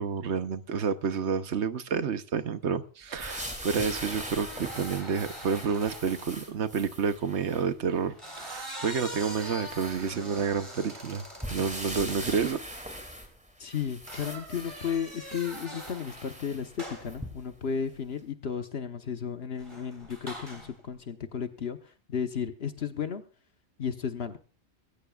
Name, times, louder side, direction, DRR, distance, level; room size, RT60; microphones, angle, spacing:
voice 1, 0.0-11.2 11.5-12.6, right 6 dB, 80° right, 1.2 m, -29 dB
sound 1, 3.1-6.4 7.9-12.3 14.1-16.4 16.8-17.2 19.6-20.8, right 1 dB, 25° right, 3.1 m, -43 dB
sound 2, 3.2-7.7 8.3-8.4 9.0-10.6 11.4-17.6 18.2-18.3, equal, 5° right, 2.6 m, -41 dB
voice 2, 13.6-23.2 23.8-24.4, left 7 dB, 65° left, 1.3 m, -34 dB
21.0 x 16.5 x 2.4 m
omnidirectional pair, 1.1 m